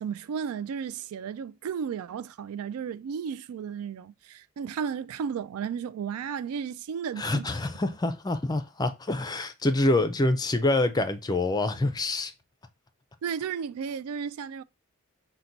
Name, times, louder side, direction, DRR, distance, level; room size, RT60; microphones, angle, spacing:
voice 1, 0.0-7.5 13.2-14.6, right 7 dB, 90° right, 0.3 m, -34 dB
voice 2, 7.2-12.3, left 2 dB, 20° left, 0.4 m, -26 dB
5.8 x 2.2 x 3.9 m
head